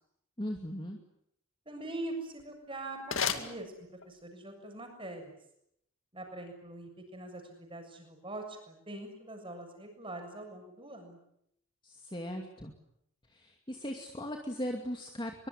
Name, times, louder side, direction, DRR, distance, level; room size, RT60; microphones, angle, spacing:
voice 1, 0.4-1.0 11.8-12.7 13.3-15.5, equal, 20° left, 3 dB, 2.5 m, -38 dB
voice 2, 1.6-5.3 6.1-11.2, right 2 dB, 25° right, 5 dB, 7.0 m, -43 dB
sound 1, 2.2-4.3, left 7 dB, 65° left, 2.4 m, -37 dB
23.5 x 23.0 x 9.9 m, 0.75 s
head